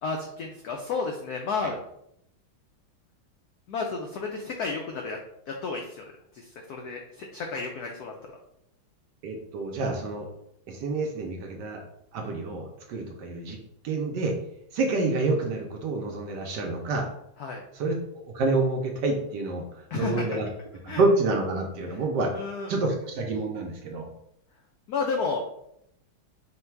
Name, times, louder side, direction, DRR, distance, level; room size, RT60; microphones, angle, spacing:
voice 1, 0.0-1.8 3.7-5.2 5.5-6.0 6.3-8.1 17.4-17.6 19.9-20.4 20.9-21.0 21.9-22.0 22.4-22.7 24.9-25.4, left 4 dB, 90° left, 1 dB, 0.8 m, -32 dB
voice 2, 9.2-10.3 10.7-11.8 12.1-13.6 13.8-14.3 14.7-17.1 17.7-17.9 18.2-20.5 20.8-22.3 22.7-24.1, right 3 dB, 70° right, 2 dB, 1.1 m, -28 dB
3.9 x 2.2 x 4.4 m, 0.77 s
omnidirectional pair, 2.2 m